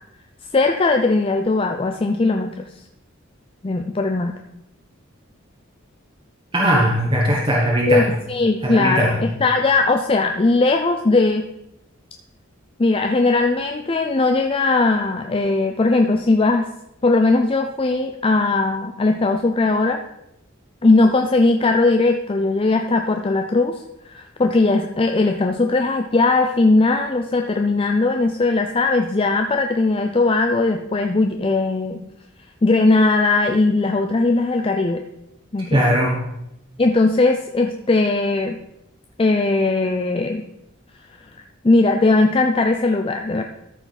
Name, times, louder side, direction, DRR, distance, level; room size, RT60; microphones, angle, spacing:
voice 1, 0.5-2.7 3.6-4.3 7.9-11.5 12.8-16.7 17.0-20.0 20.8-23.8 24.1-32.0 32.6-35.0 35.5-35.9 36.8-38.6 39.2-40.4 41.6-43.4, left 3 dB, 25° left, 4 dB, 0.5 m, -19 dB
voice 2, 6.5-8.1 8.6-9.2 35.7-36.2, equal, 25° right, -3 dB, 1.3 m, -19 dB
13.5 x 5.7 x 4.1 m, 0.85 s
head